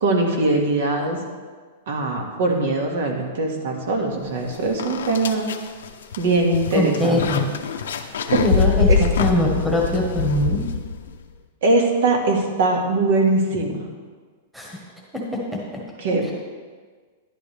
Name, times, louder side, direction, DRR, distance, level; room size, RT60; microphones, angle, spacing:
voice 1, 0.0-1.2 1.9-5.5 6.2-7.5 8.3-8.4 8.9-9.0 11.6-13.9 16.0-16.3, right 2 dB, 70° right, 2 dB, 2.0 m, -21 dB
sound 1, 4.3-4.4 4.8-11.2, left 5 dB, 90° left, 0.8 m, -24 dB
voice 2, 6.7-7.5 8.3-10.6 14.5-14.8 15.1-15.6, left 1 dB, 5° right, -3 dB, 1.4 m, -22 dB
11.5 x 11.0 x 3.4 m, 1.5 s
supercardioid pair, 160°, 0 cm